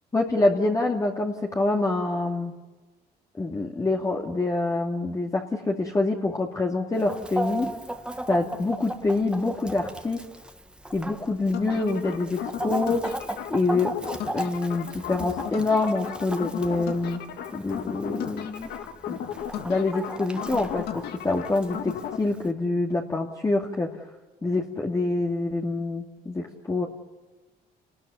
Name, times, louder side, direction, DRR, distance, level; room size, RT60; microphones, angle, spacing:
voice 1, 0.1-2.5 3.4-7.7 8.3-10.2 10.9-13.2 13.5-13.9 14.3-17.2 17.5-18.7 19.1-19.2 19.6-24.0 24.4-26.9, left 2 dB, 20° left, 0 dB, 2.3 m, -26 dB
Chicken rooster, 7.0-22.5, right 1 dB, 5° right, 1.8 m, -37 dB
sound 1, 11.5-22.2, left 10 dB, 75° left, 1.9 m, -35 dB
29.5 x 20.0 x 7.0 m, 1.2 s
cardioid pair, 110°, 17 cm